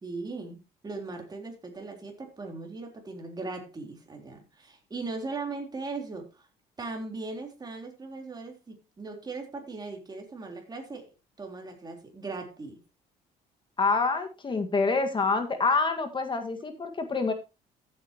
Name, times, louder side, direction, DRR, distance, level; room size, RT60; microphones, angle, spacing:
voice 1, 0.0-6.5 6.8-11.1 11.4-12.8, right 3 dB, 25° right, 2 dB, 3.8 m, -39 dB
voice 2, 13.8-17.3, left 4 dB, 30° left, 7 dB, 1.8 m, -26 dB
14.5 x 8.8 x 3.0 m, 0.26 s
cardioid pair, 110°, 17 cm